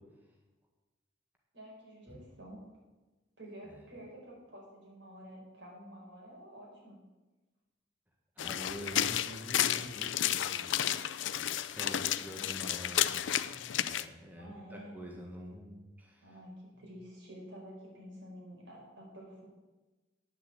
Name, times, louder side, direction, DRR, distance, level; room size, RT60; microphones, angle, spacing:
voice 1, 1.5-2.6 3.4-7.0 14.4-15.0 16.2-19.5, equal, 80° right, -3 dB, 4.8 m, -50 dB
sound 1, 8.4-14.1, left 11 dB, 85° left, 0.4 m, -32 dB
voice 2, 8.4-16.3, equal, 10° right, -1 dB, 1.7 m, -47 dB
9.8 x 7.2 x 8.1 m, 1.2 s
head